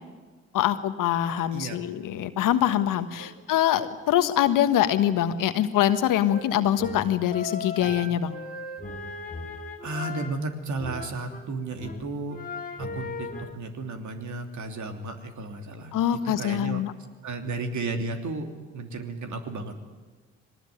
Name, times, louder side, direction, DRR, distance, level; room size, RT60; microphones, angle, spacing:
voice 1, 0.5-8.3 15.9-16.9, left 11 dB, 70° left, 11 dB, 1.4 m, -24 dB
sound 1, 6.2-11.5 11.8-13.6, left 3 dB, 25° left, 2.6 m, -38 dB
voice 2, 9.8-12.4 12.8-16.8 17.2-19.8, right 3 dB, 60° right, 5 dB, 3.0 m, -34 dB
21.5 x 19.0 x 9.6 m, 1.4 s
hypercardioid pair, 50°, 34 cm